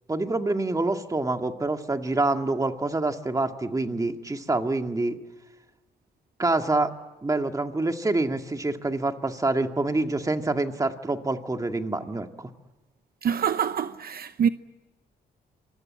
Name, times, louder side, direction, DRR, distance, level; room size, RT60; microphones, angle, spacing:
voice 1, 0.1-5.2 6.4-6.9 7.2-12.5, right 2 dB, 20° right, 2.1 m, -26 dB
voice 2, 13.2-14.5, right 8 dB, 60° right, 0.8 m, -25 dB
26.5 x 23.0 x 8.8 m
cardioid pair, 105°, 18 cm